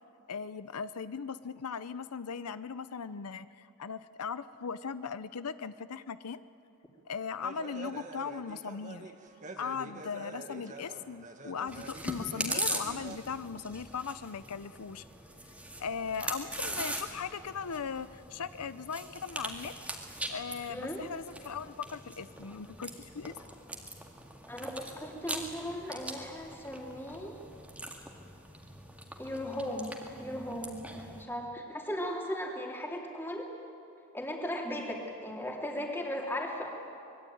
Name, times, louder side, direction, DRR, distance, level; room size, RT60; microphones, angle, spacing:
voice 1, 0.3-6.4 7.1-9.1 9.6-15.0 15.8-19.7 20.3-23.3, left 6 dB, 90° left, 14 dB, 0.6 m, -38 dB
sound 1, 7.4-13.2, right 2 dB, 35° right, 1.6 m, -46 dB
Chewing mastication, 11.7-31.2, right 1 dB, 5° right, 2.0 m, -41 dB
voice 2, 20.7-21.0 24.5-27.4 29.2-33.5 34.1-36.7, equal, 10° left, 0 dB, 3.0 m, -37 dB
24.5 x 21.5 x 9.3 m, 2.6 s
head